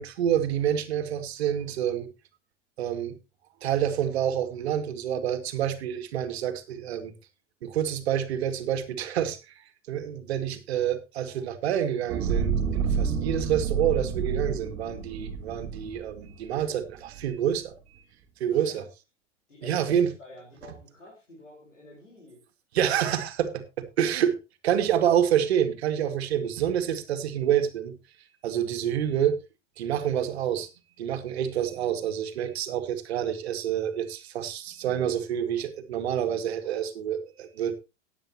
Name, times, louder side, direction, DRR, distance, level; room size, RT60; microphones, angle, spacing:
voice 1, 0.0-2.1 2.8-3.2 3.6-7.1 7.6-18.0 18.4-18.8 19.6-20.1 22.7-24.4 24.6-28.0 28.4-29.4 29.8-30.7 31.0-37.7, right 9 dB, 60° right, 8 dB, 2.1 m, -28 dB
sound 1, 12.1-16.6 17.1-17.2, right 6 dB, 40° right, 3.1 m, -29 dB
voice 2, 18.5-18.8 19.5-22.4, left 1 dB, 85° left, -2 dB, 4.4 m, -48 dB
16.5 x 9.9 x 2.9 m, 0.27 s
figure-of-eight pair, 90°, 36 cm